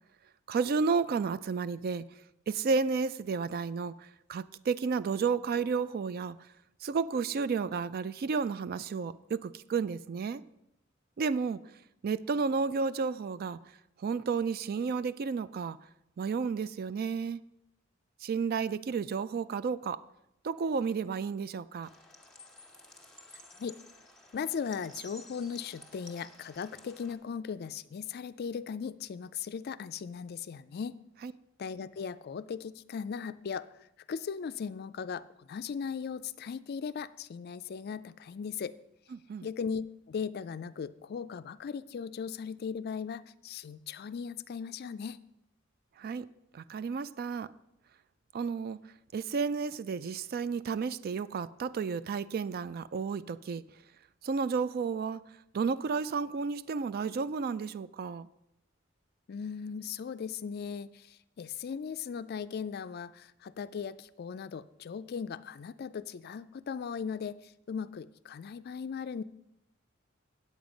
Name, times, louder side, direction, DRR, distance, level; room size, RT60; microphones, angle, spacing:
voice 1, 0.5-2.0 2.5-6.4 6.8-10.4 11.2-11.6 12.0-13.6 14.0-15.8 16.2-17.4 18.2-20.0 20.4-21.9 31.2-31.3 39.1-39.5 46.0-46.3 46.5-47.5 48.3-48.8 49.1-53.6 54.2-55.2 55.5-58.3, right 5 dB, 50° right, 0.3 m, -32 dB
sound 1, 21.8-27.2, left 1 dB, 5° left, 1.3 m, -53 dB
voice 2, 24.3-31.0 31.6-33.7 34.1-38.7 39.4-45.2 59.3-69.2, left 6 dB, 50° left, 0.4 m, -38 dB
8.8 x 8.3 x 5.1 m
head